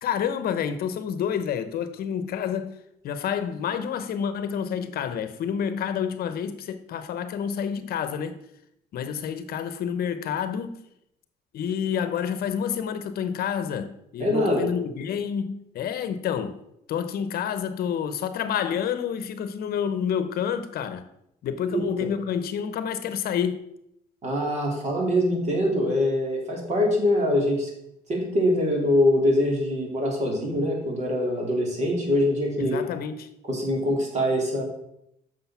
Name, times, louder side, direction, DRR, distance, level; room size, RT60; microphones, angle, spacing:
voice 1, 0.0-2.8 3.0-8.4 8.9-10.8 11.5-16.6 16.9-21.1 21.4-23.6 32.6-33.3, left 8 dB, 65° left, 0.9 m, -29 dB
voice 2, 14.2-14.7 21.7-21.8 24.2-27.7 28.1-32.8 33.5-34.6, left 1 dB, 40° right, 3.5 m, -23 dB
8.0 x 6.4 x 5.8 m
cardioid pair, 110°, 17 cm